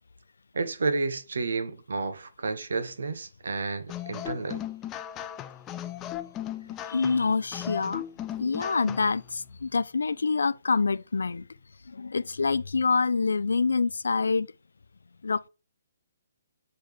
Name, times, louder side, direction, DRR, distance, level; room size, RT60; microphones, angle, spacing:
voice 1, 0.5-4.6, right 3 dB, 80° right, 1.0 m, -31 dB
sound 1, 3.9-9.2, left 12 dB, 20° left, 0.3 m, -37 dB
voice 2, 6.9-8.0 8.4-11.4 11.9-14.5 15.2-15.5, left 4 dB, 90° left, 0.4 m, -26 dB
7.9 x 4.0 x 3.4 m
hypercardioid pair, 155°, 0 cm